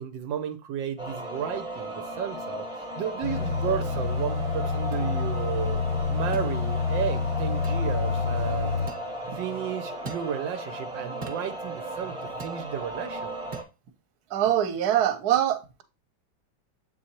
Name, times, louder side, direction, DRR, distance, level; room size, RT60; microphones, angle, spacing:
voice 1, 0.0-5.8 6.1-8.7 9.3-12.2 12.4-13.3, right 9 dB, 80° right, 1.3 m, -33 dB
sound 1, 1.0-13.6, right 1 dB, 5° right, 0.8 m, -36 dB
sound 2, 3.2-8.9, left 5 dB, 55° left, 0.3 m, -28 dB
sound 3, 4.9-5.1 6.3-6.5 7.6-7.8 8.9-9.1 10.0-10.3 11.2-11.5 12.4-12.6 13.5-13.7, right 3 dB, 35° right, 1.1 m, -40 dB
voice 2, 14.3-15.8, right 11 dB, 60° right, 1.3 m, -24 dB
7.5 x 4.3 x 2.9 m
omnidirectional pair, 2.0 m